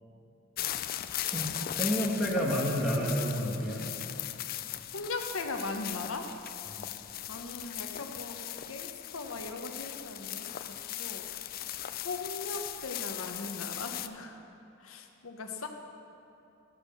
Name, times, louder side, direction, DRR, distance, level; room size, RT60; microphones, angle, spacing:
sound 1, 0.6-14.1, left 12 dB, 45° left, 0.4 m, -38 dB
voice 1, 1.2-3.8 6.8-6.9, equal, 5° right, -5 dB, 1.3 m, -30 dB
voice 2, 4.9-6.3 7.3-11.3 12.0-14.4 14.8-15.7, left 3 dB, 80° left, 4 dB, 0.9 m, -39 dB
12.5 x 6.3 x 6.7 m, 2.8 s
head